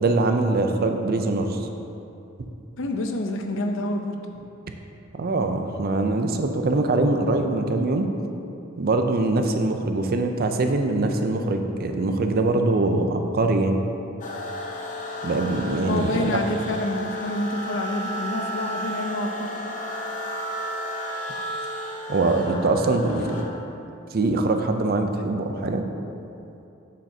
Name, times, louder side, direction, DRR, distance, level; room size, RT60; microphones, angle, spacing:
voice 1, 0.0-1.7 5.1-8.1 8.8-13.8 15.2-16.4 22.1-23.4 24.1-25.9, right 2 dB, 50° right, 5 dB, 0.5 m, -23 dB
voice 2, 2.8-4.2 15.9-19.5, left 1 dB, 65° left, 4 dB, 0.6 m, -28 dB
sound 1, 14.2-23.4, equal, 40° left, 0.8 m, -33 dB
7.6 x 7.2 x 2.8 m, 2.8 s
head